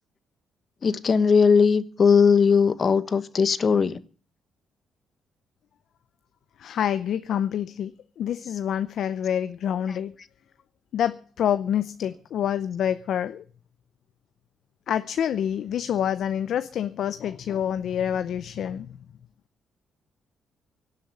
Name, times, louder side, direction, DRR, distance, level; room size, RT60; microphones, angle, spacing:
voice 1, 0.8-4.0 9.9-10.0, left 5 dB, 45° left, 1.2 m, -19 dB
voice 2, 6.6-10.1 10.9-13.4 14.9-18.9, left 9 dB, 70° left, 0.7 m, -27 dB
17.5 x 7.5 x 9.6 m
cardioid pair, 90°, 0 cm